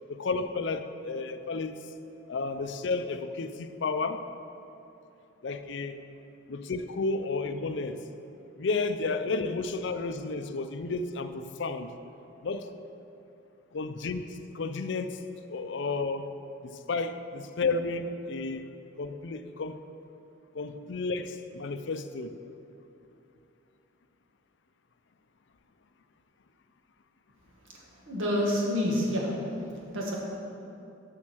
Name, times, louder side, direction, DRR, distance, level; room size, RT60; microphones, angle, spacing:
voice 1, 0.1-1.9 2.3-4.2 5.4-6.0 6.5-8.0 8.6-11.9 12.4-12.7 13.7-15.2 15.5-16.3 16.6-18.6 19.0-19.8 20.5-22.3, left 3 dB, 60° left, 9 dB, 0.4 m, -32 dB
voice 2, 28.1-29.3 29.9-30.1, left 1 dB, 80° right, -3 dB, 1.8 m, -27 dB
7.4 x 6.5 x 6.2 m, 2.9 s
head